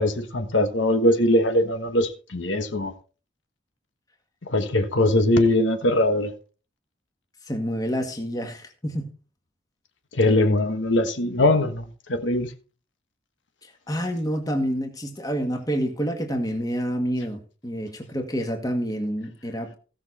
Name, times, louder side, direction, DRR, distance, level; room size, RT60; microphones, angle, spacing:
voice 1, 0.0-2.9 4.5-6.3 10.1-12.5, left 1 dB, 75° left, 1.4 m, -21 dB
voice 2, 7.4-9.1 13.6-19.8, equal, 20° left, 1.9 m, -28 dB
16.5 x 6.4 x 4.2 m
head